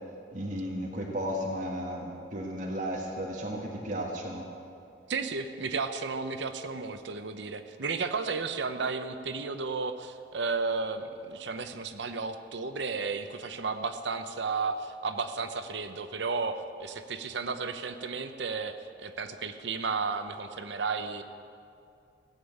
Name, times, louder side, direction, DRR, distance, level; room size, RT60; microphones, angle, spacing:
voice 1, 0.3-4.5, equal, 45° right, -2 dB, 1.6 m, -34 dB
voice 2, 5.1-21.2, right 4 dB, 70° right, 9 dB, 0.8 m, -33 dB
17.0 x 7.2 x 8.7 m, 2.5 s
head